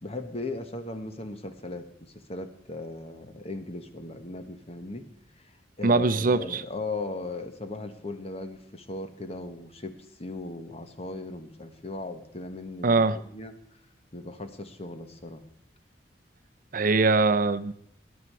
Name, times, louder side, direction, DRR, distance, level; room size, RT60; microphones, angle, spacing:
voice 1, 0.0-5.5 5.8-13.5 14.1-15.4, left 2 dB, 35° left, 1.3 m, -38 dB
voice 2, 5.8-6.6 12.8-13.2 16.7-17.7, right 3 dB, 50° right, 0.6 m, -22 dB
19.0 x 10.5 x 4.8 m
head